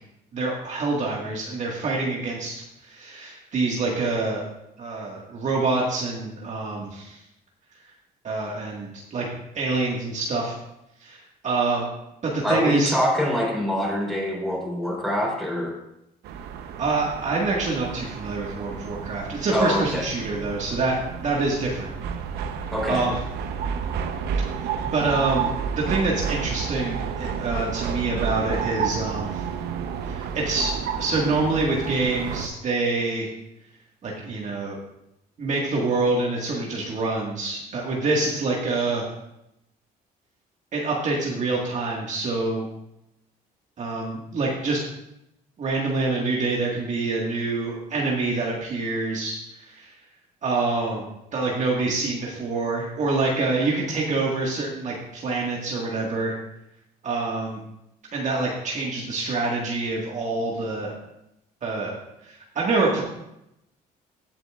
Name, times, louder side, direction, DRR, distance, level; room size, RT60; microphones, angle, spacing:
voice 1, 0.3-4.4 4.8-7.2 8.2-9.3 9.6-10.5 11.0-11.9 12.2-12.9 16.8-21.9 22.9-23.1 24.6-29.4 30.0-33.3 34.0-34.8 35.4-39.1 40.7-42.7 43.8-44.8 45.6-49.9 50.4-56.3 57.0-57.6 58.1-61.0 61.6-61.9 62.2-63.0, right 3 dB, 45° right, -3 dB, 1.8 m, -26 dB
voice 2, 12.4-15.8 19.5-20.1 22.7-23.1, equal, ahead, -3 dB, 4.0 m, -24 dB
sound 1, 16.2-32.5, right 7 dB, 75° right, 0.8 m, -31 dB
16.0 x 8.0 x 2.4 m, 0.84 s
cardioid pair, 110°, 17 cm